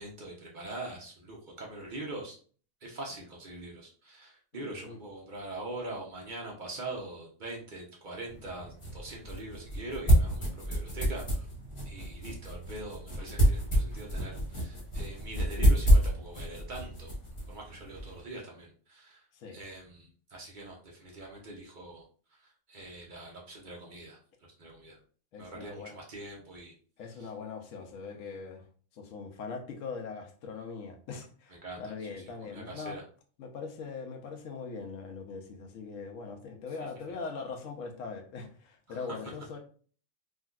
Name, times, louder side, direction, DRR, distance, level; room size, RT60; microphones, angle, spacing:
voice 1, 0.0-2.4 2.8-11.5 11.9-17.1 17.5-22.0 22.3-25.0 25.4-26.7 27.2-27.3 31.5-33.0 38.9-39.2, right 2 dB, 45° right, -1 dB, 0.6 m, -43 dB
voice 2, 4.5-5.0 19.3-19.6 25.3-25.9 27.0-28.7 28.9-33.0 33.4-39.6, left 4 dB, 70° left, 4 dB, 1.0 m, -41 dB
sound 1, 8.3-18.2, equal, 25° left, 0.9 m, -28 dB
3.6 x 2.4 x 2.3 m, 0.43 s
omnidirectional pair, 1.5 m